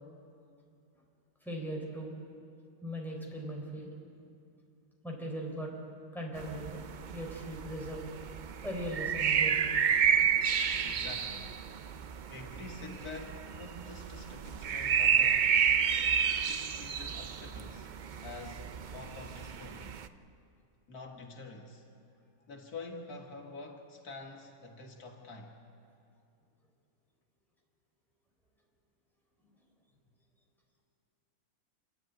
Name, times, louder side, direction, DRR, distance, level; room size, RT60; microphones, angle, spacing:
voice 1, 1.4-2.1 2.8-3.9 5.0-5.7 6.1-6.8 7.1-8.0 8.6-10.0, equal, ahead, -2 dB, 4.1 m, -39 dB
sound 1, 6.4-20.1, right 7 dB, 75° right, 0.4 m, -31 dB
voice 2, 10.7-11.6 12.3-15.6 16.3-17.9 18.2-20.0 20.9-21.9 22.5-25.6, left 3 dB, 85° left, 2 dB, 2.2 m, -47 dB
28.0 x 11.0 x 9.2 m, 2.5 s
omnidirectional pair, 1.6 m